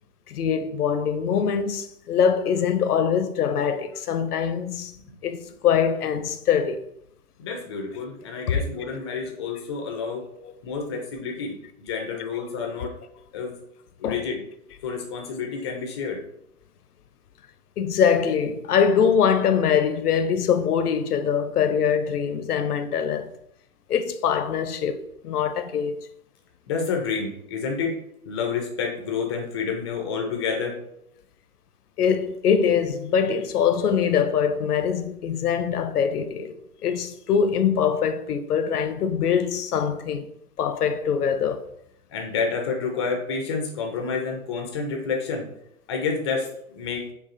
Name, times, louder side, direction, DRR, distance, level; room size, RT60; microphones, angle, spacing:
voice 1, 0.3-4.9 5.2-6.8 8.5-8.6 10.4-10.5 12.7-12.8 14.0-14.2 17.8-23.3 23.9-25.0 25.2-26.0 32.0-36.6 36.8-40.3 40.6-41.7, left 7 dB, 85° left, 0.6 m, -23 dB
voice 2, 7.4-10.2 10.6-12.9 13.3-13.6 14.0-14.4 14.8-16.2 26.7-27.9 28.2-30.8 42.1-45.5 45.9-47.1, left 5 dB, 20° left, 0.4 m, -29 dB
4.8 x 2.4 x 2.5 m
hypercardioid pair, 120°, 44 cm